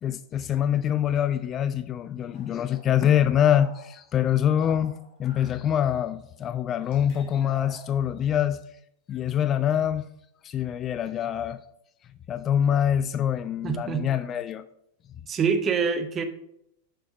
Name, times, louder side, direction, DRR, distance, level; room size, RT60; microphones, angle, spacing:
voice 1, 0.0-8.6 9.1-10.1 10.4-11.6 12.3-14.6, left 9 dB, 30° left, 0.3 m, -25 dB
sound 1, 2.3-4.1 4.6-5.8 6.4-6.5 6.8-8.3, left 2 dB, 45° left, 2.3 m, -50 dB
voice 2, 13.6-14.0 15.3-16.2, right 6 dB, 25° right, 0.8 m, -25 dB
6.7 x 5.7 x 4.9 m
figure-of-eight pair, 90°, 0 cm